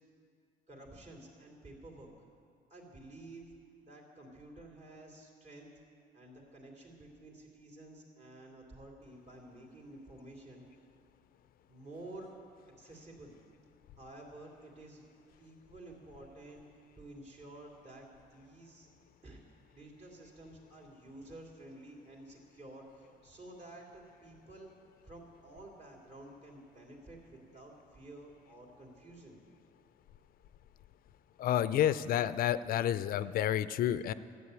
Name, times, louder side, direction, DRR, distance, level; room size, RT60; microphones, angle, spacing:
voice 1, 0.7-2.1 2.7-3.5 3.8-5.7 6.1-10.6 11.7-12.3 12.8-13.4 14.0-15.0 15.4-16.6 17.0-18.9 19.2-19.4 19.7-24.7 25.1-29.4, right 2 dB, 40° right, -1 dB, 3.0 m, -51 dB
voice 2, 31.4-34.1, left 11 dB, 60° left, 15 dB, 0.5 m, -30 dB
13.0 x 9.2 x 8.3 m, 2.2 s
cardioid pair, 110°, 17 cm